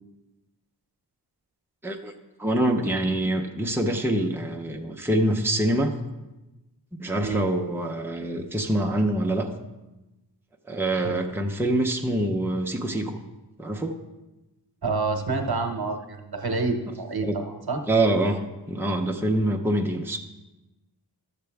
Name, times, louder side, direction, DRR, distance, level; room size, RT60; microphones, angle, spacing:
voice 1, 2.4-5.9 7.0-9.5 10.7-13.2 13.6-14.0 17.2-17.4 17.9-18.4 18.7-20.2, right 1 dB, 5° right, 2 dB, 0.9 m, -25 dB
voice 2, 14.8-17.8, right 3 dB, 60° right, 4 dB, 1.1 m, -28 dB
12.0 x 6.7 x 3.5 m, 1.0 s
cardioid pair, 40°, 42 cm